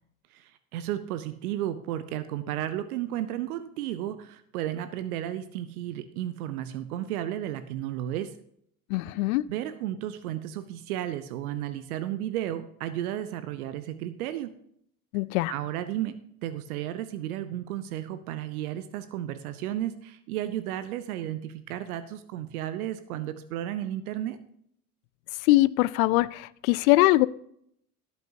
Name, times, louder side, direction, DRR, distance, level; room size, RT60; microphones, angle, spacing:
voice 1, 0.3-8.3 9.5-14.5 15.5-24.4, right 12 dB, 70° right, 0.8 m, -33 dB
voice 2, 8.9-9.5 15.1-15.5 25.4-27.3, left 18 dB, 65° left, 0.6 m, -22 dB
13.0 x 11.5 x 2.7 m
figure-of-eight pair, 65°, 45 cm